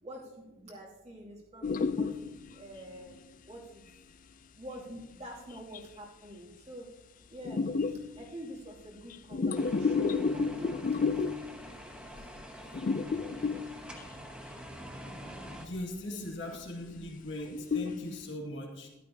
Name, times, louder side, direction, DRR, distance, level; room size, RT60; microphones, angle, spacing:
voice 1, 0.0-3.2 3.4-3.9 4.5-6.9 7.3-12.3, equal, 35° right, -3 dB, 2.6 m, -47 dB
sound 1, 1.6-2.5 3.1-3.2 5.7-5.8 7.4-8.2 9.1-11.6 12.1-12.4 12.7-14.0 15.5-15.8 16.2-16.6 17.0-17.1 17.5-18.1, left 4 dB, 40° left, 0.4 m, -31 dB
sound 2, 9.5-15.7, equal, 5° right, 1.0 m, -46 dB
voice 2, 15.6-18.9, left 1 dB, 65° left, 0 dB, 2.1 m, -39 dB
13.0 x 12.0 x 2.8 m, 0.96 s
head